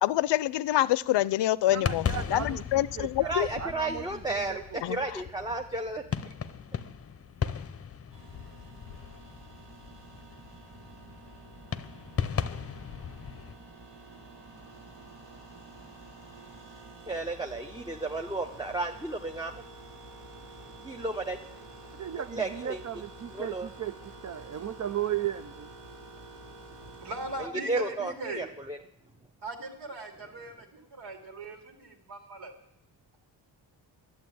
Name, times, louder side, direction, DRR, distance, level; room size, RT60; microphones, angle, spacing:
voice 1, 0.0-3.5 4.8-5.2, left 14 dB, 80° left, 19 dB, 0.6 m, -26 dB
sound 1, 1.7-13.5, left 7 dB, 35° left, 0.7 m, -37 dB
voice 2, 1.7-2.6 3.0-4.6 21.9-23.9 24.2-25.7, right 10 dB, 45° right, 12 dB, 0.5 m, -35 dB
voice 3, 3.2-6.0 17.1-19.6 20.8-21.4 22.3-22.8 23.3-23.7 27.4-28.8, right 2 dB, 10° right, 3 dB, 0.8 m, -33 dB
sound 2, 8.1-27.5, right 2 dB, 90° right, 3.5 m, -49 dB
voice 4, 27.0-28.4 29.4-32.5, right 2 dB, 75° right, 3 dB, 2.8 m, -39 dB
11.5 x 7.9 x 9.2 m, 0.77 s
cardioid pair, 95°, 42 cm